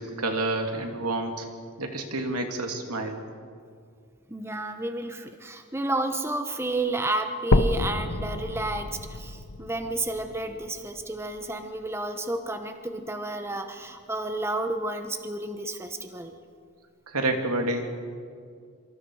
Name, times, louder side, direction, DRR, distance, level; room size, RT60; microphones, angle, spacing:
voice 1, 0.0-1.5 1.8-3.2 17.1-17.9, right 2 dB, 85° right, 4 dB, 2.7 m, -29 dB
voice 2, 4.3-16.3, right 2 dB, 10° right, 6 dB, 1.0 m, -31 dB
sound 1, 7.5-11.5 12.1-12.2 12.7-12.8 13.2-13.3 14.1-14.2, left 2 dB, 75° left, 0.9 m, -28 dB
26.0 x 25.5 x 4.9 m, 2.2 s
head